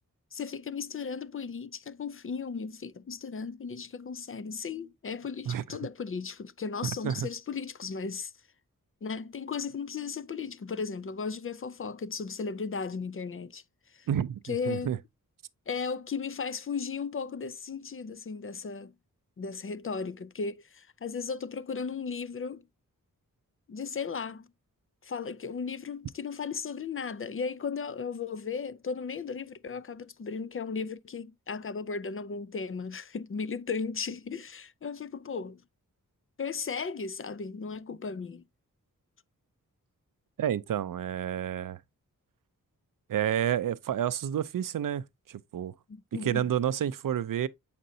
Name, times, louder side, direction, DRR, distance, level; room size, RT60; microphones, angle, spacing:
voice 1, 0.3-8.3 9.0-13.6 13.9-14.1 14.4-15.0 15.7-18.9 19.4-22.6 23.7-24.5 25.0-35.6 36.4-38.4 45.9-46.5, left 5 dB, 40° left, 0.5 m, -36 dB
voice 2, 6.8-7.3 14.1-15.0 40.4-41.8 43.1-45.7 46.2-47.5, right 10 dB, 75° right, 0.5 m, -30 dB
7.7 x 5.1 x 2.7 m
wide cardioid pair, 75°, 33 cm